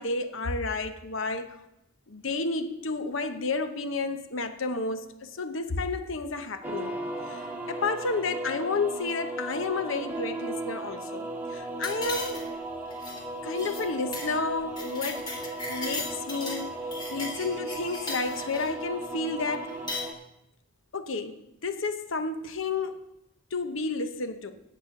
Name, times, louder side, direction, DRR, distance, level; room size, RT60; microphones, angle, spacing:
voice 1, 0.0-1.5 2.1-6.9 7.3-12.4 13.4-15.2 15.7-16.7 17.1-19.7 20.9-21.4 21.6-23.0 23.5-24.5, left 3 dB, 65° left, 9 dB, 0.9 m, -31 dB
sound 1, 6.6-20.1, right 2 dB, 10° right, 1.1 m, -36 dB
sound 2, 11.8-12.6 12.9-13.2 13.5-13.8 14.1-14.3 14.6-16.6 16.9-18.7 19.6-20.1, left 3 dB, 20° left, 2.0 m, -37 dB
9.4 x 8.2 x 5.9 m, 0.84 s
head